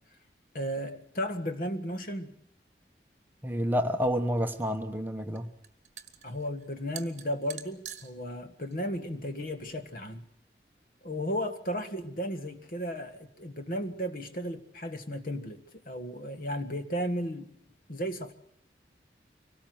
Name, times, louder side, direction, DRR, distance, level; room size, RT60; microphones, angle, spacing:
voice 1, 0.5-2.3 6.2-10.3 11.0-17.5 17.9-18.3, equal, 50° left, 1.7 m, -34 dB
voice 2, 3.4-5.5, equal, 10° right, 1.0 m, -29 dB
sound 1, 4.0-10.2, right 10 dB, 40° right, 1.6 m, -49 dB
24.5 x 18.5 x 7.9 m
head